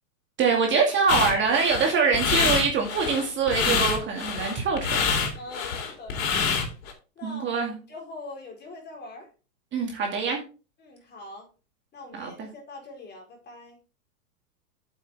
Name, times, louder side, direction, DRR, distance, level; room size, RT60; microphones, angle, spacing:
voice 1, 0.4-5.0 7.2-7.8 9.7-10.4 12.2-12.5, right 5 dB, 25° right, 1 dB, 2.2 m, -24 dB
sound 1, 1.1-6.9, left 6 dB, 60° left, 3.7 m, -26 dB
voice 2, 5.4-6.6 7.2-7.6 7.9-9.3 10.8-11.5 11.9-13.8, left 2 dB, 20° left, 1 dB, 4.2 m, -43 dB
8.2 x 7.8 x 3.6 m, 0.33 s
hypercardioid pair, 120°, 45 cm